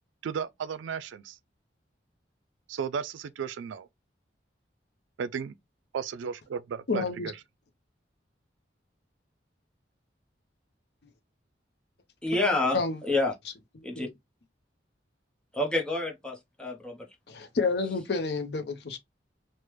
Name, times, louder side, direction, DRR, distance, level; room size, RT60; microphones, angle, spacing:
voice 1, 0.2-1.4 2.7-3.9 5.2-5.5 5.9-7.4, right 6 dB, 85° right, 0.3 m, -34 dB
voice 2, 6.9-7.3 12.7-13.0 14.0-14.1 17.3-19.0, left 4 dB, 60° left, 0.5 m, -29 dB
voice 3, 12.2-13.3 13.8-14.1 15.5-17.1, left 2 dB, 5° left, 0.6 m, -28 dB
3.3 x 2.1 x 2.9 m
head